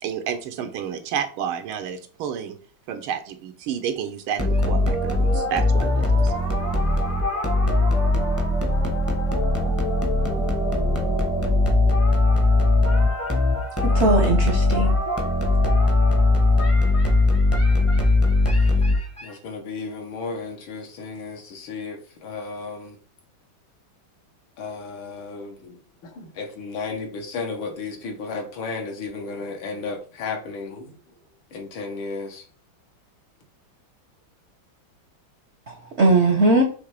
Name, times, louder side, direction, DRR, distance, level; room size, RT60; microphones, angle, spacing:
voice 1, 0.0-2.6 2.9-6.3, right 8 dB, 90° right, 1.6 m, -30 dB
sound 1, 4.4-19.3, left 2 dB, 10° left, 0.7 m, -20 dB
sound 2, 9.3-16.7, left 3 dB, 40° left, 0.9 m, -34 dB
voice 2, 13.8-14.9 35.7-36.6, right 2 dB, 55° right, 0.8 m, -19 dB
voice 3, 19.2-23.0 24.6-30.9 31.5-32.5, left 4 dB, 75° left, 2.0 m, -34 dB
6.3 x 3.2 x 4.8 m
omnidirectional pair, 2.2 m